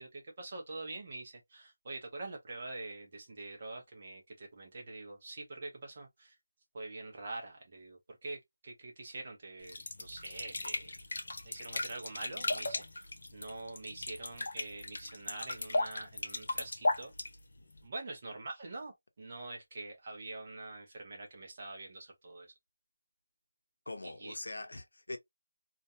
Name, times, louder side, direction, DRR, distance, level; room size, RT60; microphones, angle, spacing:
voice 1, 0.0-6.3 6.7-11.0 11.4-17.1 17.8-22.5 24.0-24.3, right 2 dB, 25° right, 0.7 m, -45 dB
sound 1, 9.6-17.9, left 2 dB, 45° left, 0.6 m, -37 dB
voice 2, 23.9-25.2, left 2 dB, 80° left, 0.7 m, -42 dB
2.4 x 2.2 x 2.6 m
figure-of-eight pair, 180°, 0 cm